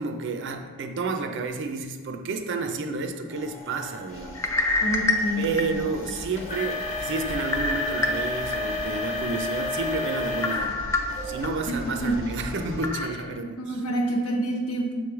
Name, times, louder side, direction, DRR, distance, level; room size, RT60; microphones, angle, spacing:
voice 1, 0.0-4.8 5.4-10.8 11.2-13.9, right 3 dB, 55° right, 5 dB, 0.5 m, -31 dB
sound 1, 3.3-10.7 11.1-11.5 12.1-12.2 12.9-13.0, left 2 dB, 30° left, 1.1 m, -33 dB
sound 2, 4.1-12.9, equal, 60° left, 1.1 m, -40 dB
sound 3, 4.3-6.1 6.6-6.7 7.5-8.6 9.0-9.1 10.4-11.5 11.9-12.0 12.8-13.1, left 3 dB, 15° left, 0.3 m, -26 dB
voice 2, 4.8-5.6 12.0-12.2 13.3-14.9, right 1 dB, 85° left, 0 dB, 1.1 m, -27 dB
6.4 x 3.1 x 4.7 m, 1.4 s
head